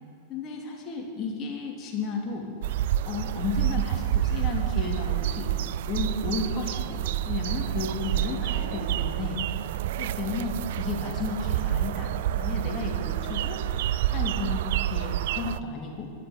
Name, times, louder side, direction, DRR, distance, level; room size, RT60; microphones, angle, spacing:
voice 1, 0.3-2.5 3.1-5.5 5.9-9.4 10.0-13.6 14.1-16.1, left 4 dB, 30° left, 1 dB, 2.7 m, -33 dB
sound 1, 2.6-15.6, right 12 dB, 55° right, 0.4 m, -28 dB
12.0 x 11.5 x 9.2 m, 2.7 s
figure-of-eight pair, 90°, 0 cm